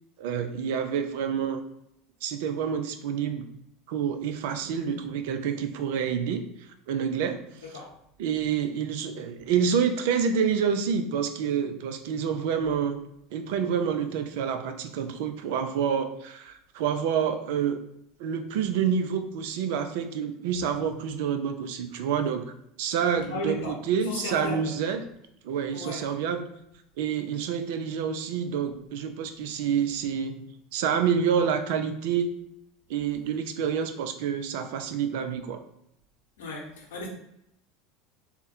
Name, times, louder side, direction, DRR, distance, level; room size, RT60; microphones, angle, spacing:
voice 1, 0.2-1.6 2.2-3.5 3.9-6.4 6.9-7.4 8.2-13.0 13.3-17.8 18.2-22.5 22.8-25.0 25.4-26.5 27.0-32.3 32.9-35.6, right 7 dB, 65° right, 8 dB, 0.4 m, -28 dB
voice 2, 4.7-5.0 7.5-8.0 20.6-21.0 23.1-24.8 25.7-26.0 33.1-33.2 36.4-37.1, left 1 dB, 70° left, -1 dB, 0.8 m, -37 dB
3.5 x 2.1 x 4.2 m, 0.78 s
figure-of-eight pair, 75°, 0 cm